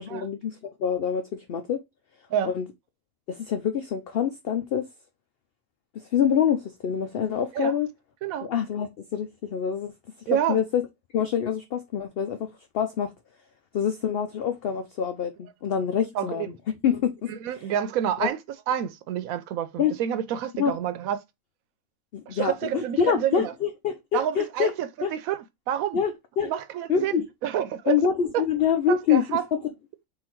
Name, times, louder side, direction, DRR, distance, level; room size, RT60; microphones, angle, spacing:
voice 1, 0.0-1.8 2.4-2.6 3.3-4.9 5.9-7.9 8.5-9.9 10.3-10.8 11.1-12.5 12.7-13.1 13.7-16.4 16.8-17.3 18.2-18.3 19.8-19.9 20.6-20.7 22.1-24.7 25.0-25.1 25.9-26.1 26.4-26.5 26.9-27.2 27.9-29.6, left 8 dB, 65° left, 0.6 m, -26 dB
voice 2, 10.3-10.6 16.1-16.5 17.3-18.4 18.7-21.2 22.3-23.5 24.1-26.0 26.4-28.0 28.3-28.4 28.9-29.4, right 10 dB, 80° right, 1.0 m, -28 dB
3.7 x 2.6 x 4.4 m
omnidirectional pair, 1.5 m